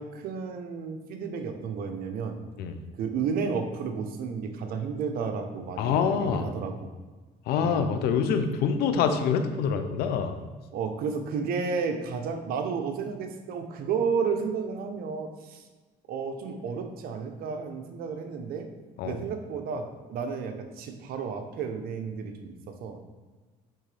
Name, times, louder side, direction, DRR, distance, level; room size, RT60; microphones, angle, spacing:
voice 1, 0.0-2.4 3.0-6.9 7.6-7.9 10.7-15.6 16.1-18.7 19.0-23.0, right 5 dB, 70° right, 6 dB, 0.9 m, -32 dB
voice 2, 5.8-6.5 7.5-10.3 19.0-19.2, left 6 dB, 75° left, 8 dB, 0.7 m, -25 dB
10.0 x 3.7 x 3.4 m, 1.3 s
cardioid pair, 105°, 16 cm